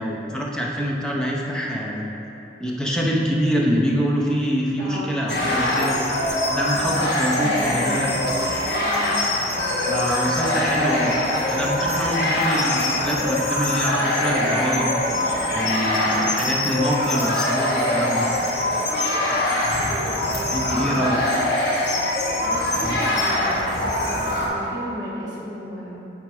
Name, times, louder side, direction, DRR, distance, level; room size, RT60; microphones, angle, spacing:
voice 1, 0.0-2.1 2.6-6.0 6.5-8.1 9.9-11.1 11.5-14.9 15.5-18.3 20.5-21.4, equal, 5° left, -3 dB, 0.6 m, -25 dB
voice 2, 4.8-5.2 6.7-7.1 7.4-8.5 8.8-9.2 20.2-20.8 22.2-26.1, equal, 25° right, -8 dB, 1.4 m, -34 dB
sound 1, 5.3-24.5, left 1 dB, 65° left, 1.1 m, -23 dB
7.9 x 4.1 x 4.7 m, 3.0 s
head